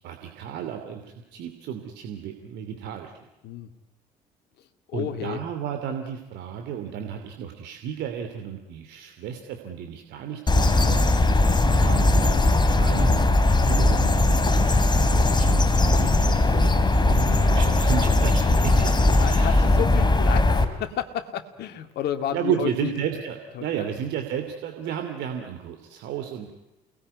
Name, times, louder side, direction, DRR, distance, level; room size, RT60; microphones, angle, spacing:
voice 1, 0.0-3.1 4.9-11.0 11.8-19.6 22.3-26.5, right 8 dB, 60° right, 5 dB, 2.9 m, -33 dB
voice 2, 4.9-5.4 11.6-11.8 19.2-22.9 23.6-23.9, left 10 dB, 55° left, 8 dB, 2.5 m, -31 dB
sound 1, 10.5-20.6, left 2 dB, 20° left, 3.4 m, -19 dB
29.0 x 19.5 x 9.7 m, 1.0 s
figure-of-eight pair, 50°, 20 cm